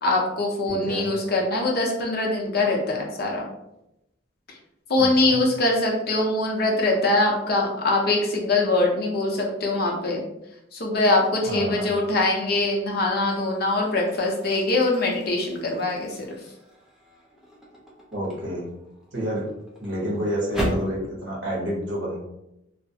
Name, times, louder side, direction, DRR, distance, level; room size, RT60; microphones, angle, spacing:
voice 1, 0.0-3.5 4.9-10.2 10.7-16.1, left 2 dB, 50° left, -1 dB, 0.5 m, -23 dB
voice 2, 0.7-1.2 5.0-5.4 11.5-11.9 18.1-18.7 19.1-19.4 19.8-22.2, equal, 65° right, -4 dB, 0.9 m, -29 dB
sound 1, 12.1-12.4 13.0-21.0, equal, ahead, 0.4 m, -37 dB
2.3 x 2.0 x 2.7 m, 0.85 s
head